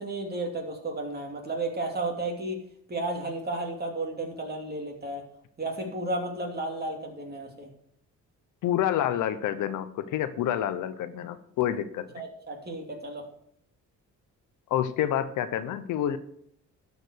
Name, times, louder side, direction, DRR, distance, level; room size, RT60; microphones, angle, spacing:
voice 1, 0.0-2.6 2.9-5.2 5.6-7.7 12.1-13.2, right 2 dB, 30° right, 1 dB, 2.8 m, -33 dB
voice 2, 8.6-12.2 14.7-16.2, left 11 dB, 80° left, 11 dB, 0.9 m, -28 dB
12.0 x 5.1 x 6.5 m, 0.69 s
cardioid pair, 90°, 30 cm